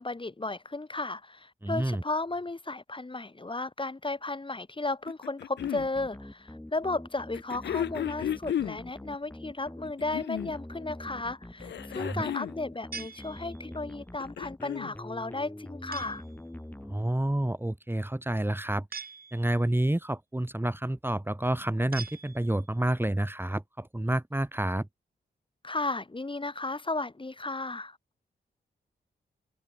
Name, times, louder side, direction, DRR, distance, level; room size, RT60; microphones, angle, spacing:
voice 1, 0.0-16.2 25.6-28.0, left 2 dB, 30° left, 3.9 m, -34 dB
voice 2, 1.6-2.0 12.0-12.2 16.9-18.9 19.3-24.9, right 1 dB, 10° right, 3.1 m, -29 dB
sound 1, 5.1-5.9 7.3-8.8 9.8-10.6 11.6-12.6 14.0-14.9 16.1-16.2, left 10 dB, 80° left, 0.6 m, -33 dB
sound 2, 5.6-17.5, left 1 dB, 10° left, 2.2 m, -45 dB
sound 3, 12.9-13.9 15.9-16.4 18.9-19.8 21.9-22.8, right 5 dB, 55° right, 2.9 m, -44 dB
cardioid pair, 60°, 18 cm